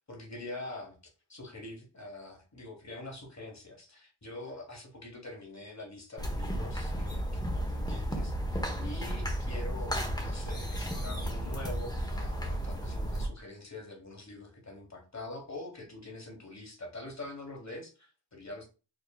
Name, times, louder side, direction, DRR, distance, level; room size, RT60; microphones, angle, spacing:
voice 1, 0.1-18.7, left 2 dB, 35° left, 2 dB, 1.5 m, -45 dB
sound 1, 6.2-13.3, equal, 10° left, 1.1 m, -33 dB
5.1 x 3.1 x 2.4 m, 0.33 s
wide cardioid pair, 55°, 49 cm